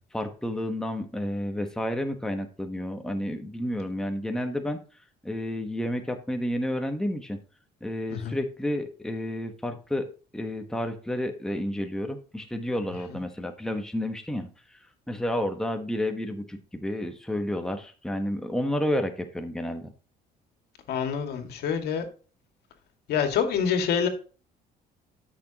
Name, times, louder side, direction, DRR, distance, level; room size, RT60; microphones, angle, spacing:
voice 1, 0.1-4.8 5.2-7.4 7.8-10.1 10.3-14.8 15.1-19.9, left 1 dB, 5° left, 5 dB, 1.1 m, -30 dB
voice 2, 20.9-22.1 23.1-24.1, left 7 dB, 70° left, 5 dB, 2.1 m, -26 dB
13.0 x 6.3 x 2.9 m, 0.37 s
cardioid pair, 110°, 17 cm